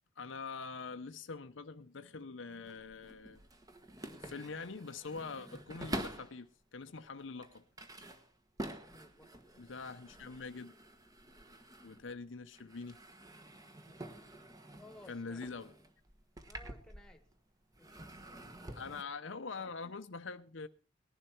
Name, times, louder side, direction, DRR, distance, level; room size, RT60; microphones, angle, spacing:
voice 1, 0.2-3.4 4.2-7.6 9.6-10.8 11.8-13.0 15.1-15.7 18.8-20.7, left 4 dB, 65° left, 0.7 m, -44 dB
sound 1, 2.5-6.4 7.0-12.3 12.5-17.4 17.7-19.0, right 1 dB, 20° right, 1.4 m, -48 dB
voice 2, 8.8-9.3 10.0-10.1 14.8-15.4 16.4-17.2 17.8-19.0, left 1 dB, 5° left, 1.8 m, -59 dB
19.5 x 11.0 x 4.4 m
head